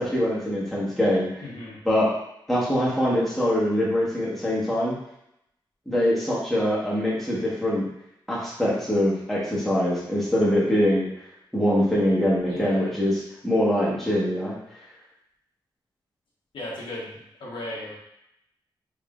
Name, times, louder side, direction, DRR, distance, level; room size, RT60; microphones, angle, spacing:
voice 1, 0.0-1.3 1.8-2.1 2.5-4.9 5.9-7.9 8.3-11.1 11.5-13.1 13.4-14.6, equal, 5° left, -7 dB, 1.3 m, -23 dB
voice 2, 1.4-1.8 12.5-12.9 16.5-17.1 17.4-18.0, left 1 dB, 75° left, -5 dB, 1.1 m, -35 dB
3.7 x 3.7 x 2.5 m, 0.80 s
wide cardioid pair, 100°, 9 cm